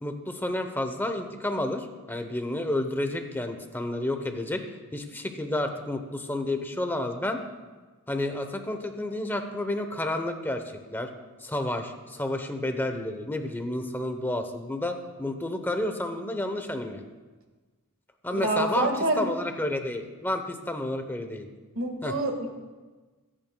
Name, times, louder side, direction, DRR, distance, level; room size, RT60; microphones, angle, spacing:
voice 1, 0.0-4.6 4.9-7.4 8.1-10.6 10.9-11.1 11.4-17.0 18.2-18.9 19.2-21.5 22.0-22.1, left 1 dB, 10° left, 6 dB, 0.8 m, -30 dB
voice 2, 18.3-19.3 21.7-22.5, right 1 dB, 60° right, 3 dB, 1.7 m, -27 dB
24.0 x 8.9 x 2.3 m, 1.3 s
head